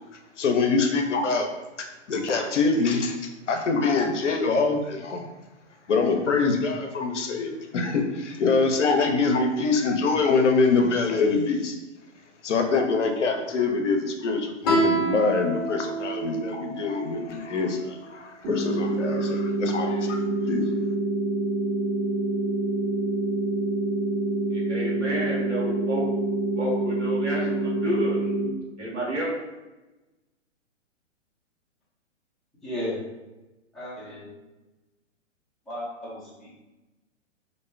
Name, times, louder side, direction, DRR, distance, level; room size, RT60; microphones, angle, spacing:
voice 1, 0.4-1.5 1.8-5.2 5.9-11.7 12.4-20.6, left 4 dB, 75° left, 4 dB, 0.6 m, -24 dB
Guitar, 14.6-17.9, right 2 dB, 35° left, 0.8 m, -28 dB
sound 1, 18.4-28.5, right 2 dB, 45° right, 1.2 m, -26 dB
voice 2, 24.5-26.1 26.6-28.3 28.8-29.3, right 1 dB, 75° right, -3 dB, 1.2 m, -29 dB
voice 3, 32.6-33.0 33.7-34.3 35.7-36.6, left 1 dB, ahead, -12 dB, 0.7 m, -34 dB
2.6 x 2.1 x 3.3 m, 1.1 s
figure-of-eight pair, 120°, 37 cm